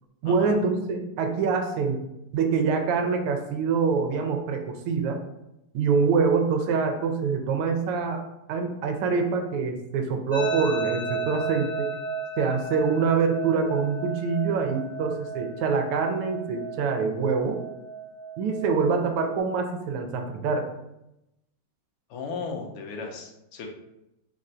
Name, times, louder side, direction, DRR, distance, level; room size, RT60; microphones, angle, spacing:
voice 1, 0.2-2.0 2.3-5.2 5.7-8.2 8.5-11.9 12.4-17.6 18.4-20.7, right 5 dB, 85° right, 4 dB, 1.6 m, -25 dB
sound 1, 10.3-19.4, right 4 dB, 55° left, 2.0 m, -34 dB
voice 2, 22.1-23.7, left 4 dB, 85° left, 1 dB, 1.6 m, -36 dB
4.1 x 2.5 x 4.2 m, 0.88 s
omnidirectional pair, 2.4 m